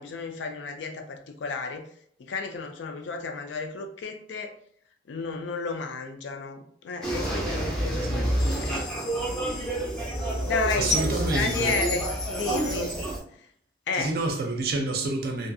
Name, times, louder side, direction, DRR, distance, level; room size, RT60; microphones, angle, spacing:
voice 1, 0.0-1.9 2.2-4.6 5.1-8.9 10.4-13.0 13.3-13.5 13.9-14.2, left 4 dB, 70° left, 0.4 m, -32 dB
sound 1, 7.0-13.2, right 1 dB, 5° left, 0.5 m, -28 dB
sound 2, 8.4-12.1, left 5 dB, 90° left, 0.8 m, -45 dB
voice 2, 10.8-11.7 13.9-15.5, right 2 dB, 50° right, 0.4 m, -28 dB
2.6 x 2.3 x 2.5 m
head